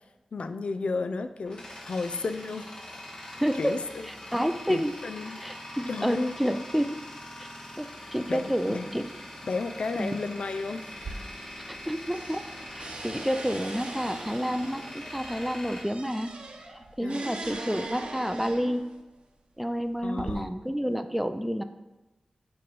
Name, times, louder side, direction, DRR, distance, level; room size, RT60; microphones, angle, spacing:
voice 1, 0.3-2.7 3.6-4.1 4.7-5.4 5.9-6.3 8.3-8.9 9.4-10.8 17.0-17.6 20.0-20.5, left 3 dB, 70° left, 9 dB, 0.4 m, -33 dB
Tools, 1.3-16.8, left 1 dB, 45° left, 1.7 m, -43 dB
voice 2, 3.3-3.8 4.1-4.9 5.4-7.0 7.4-7.5 7.8-9.0 10.0-10.2 11.7-12.5 12.7-16.3 16.7-18.8 19.6-21.6, equal, 5° right, 9 dB, 0.4 m, -29 dB
sound 1, 10.9-11.9 12.1-19.0 19.7-20.3, right 2 dB, 65° right, 0.8 m, -41 dB
7.7 x 3.1 x 5.3 m, 1.1 s
wide cardioid pair, 85°, 2 cm